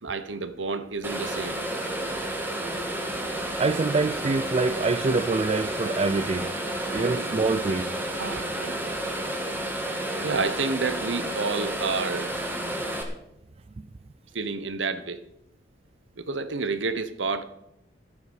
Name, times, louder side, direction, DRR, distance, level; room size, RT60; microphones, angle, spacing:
voice 1, 0.0-1.6 6.9-7.3 8.2-8.9 10.2-12.3 14.3-15.2 16.2-17.4, right 4 dB, 80° right, 1.1 m, -30 dB
sound 1, 1.0-13.0, right 1 dB, 10° right, 1.9 m, -31 dB
voice 2, 3.6-6.5 6.9-7.9 13.8-13.9, right 3 dB, 35° right, 0.4 m, -25 dB
12.5 x 9.3 x 6.4 m
head